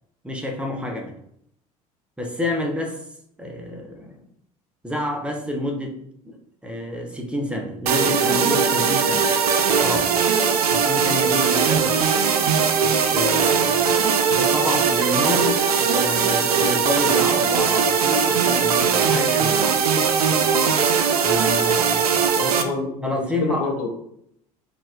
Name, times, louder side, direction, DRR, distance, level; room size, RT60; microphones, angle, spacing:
voice 1, 0.2-1.1 2.2-3.0 3.4-4.2 4.8-6.0 6.2-6.4 6.6-9.3 9.8-10.1 10.7-12.0 12.8-14.0 14.3-19.8 21.2-22.3 23.0-23.7, left 1 dB, 5° right, 2 dB, 0.7 m, -28 dB
sound 1, 7.9-22.6, right 6 dB, 80° right, 0.4 m, -20 dB
voice 2, 22.4-23.9, left 3 dB, 70° left, 1 dB, 0.8 m, -27 dB
4.2 x 2.4 x 2.3 m, 0.71 s
figure-of-eight pair, 70°, 19 cm